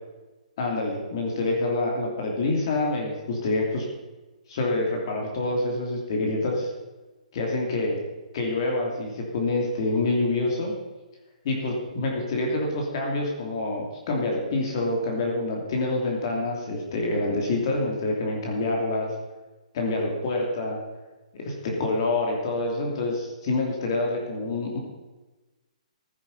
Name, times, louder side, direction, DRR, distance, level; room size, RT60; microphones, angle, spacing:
voice 1, 0.6-3.9 4.5-6.7 7.3-8.0 8.3-10.7 11.4-19.1 19.7-20.8 21.4-24.8, left 2 dB, 35° left, 0 dB, 3.0 m, -27 dB
16.0 x 9.8 x 5.5 m, 1.2 s
hypercardioid pair, 170°, 4 cm